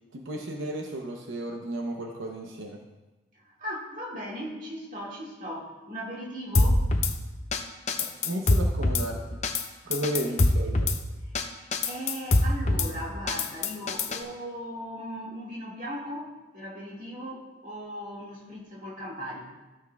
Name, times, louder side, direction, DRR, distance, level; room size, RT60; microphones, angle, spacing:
voice 1, 0.1-2.8 8.0-9.4 9.8-10.9, right 1 dB, 85° right, 2 dB, 0.8 m, -33 dB
voice 2, 3.6-6.8 11.4-19.5, equal, 40° right, -3 dB, 2.0 m, -38 dB
Drum kit / Snare drum, 6.5-7.1 7.5-7.6 7.9-9.0 9.4-9.6 9.9-11.0 11.3-11.4 11.7-12.9 13.3-14.2, left 2 dB, 35° left, 0.6 m, -23 dB
13.5 x 7.3 x 2.3 m, 1.1 s
head